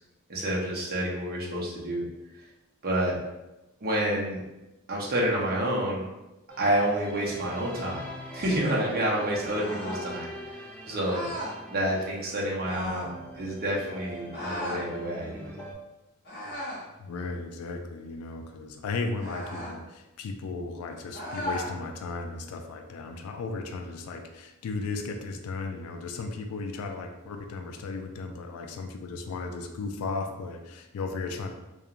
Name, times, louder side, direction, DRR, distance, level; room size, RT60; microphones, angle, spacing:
voice 1, 0.3-2.0 2.8-3.2 3.8-4.4 4.9-6.0 6.6-8.1 8.3-10.6 10.9-11.3 11.7-15.6, right 1 dB, 45° right, -4 dB, 0.6 m, -29 dB
sound 1, 6.5-15.7, right 1 dB, 5° left, 0.3 m, -43 dB
sound 2, 9.5-10.1 11.0-11.6 12.6-13.1 14.3-14.8 16.2-16.9 19.2-19.8 21.1-21.7, equal, 45° left, 1.0 m, -35 dB
voice 2, 17.0-31.5, left 3 dB, 90° left, 5 dB, 0.3 m, -35 dB
2.4 x 2.3 x 2.9 m, 1.0 s
head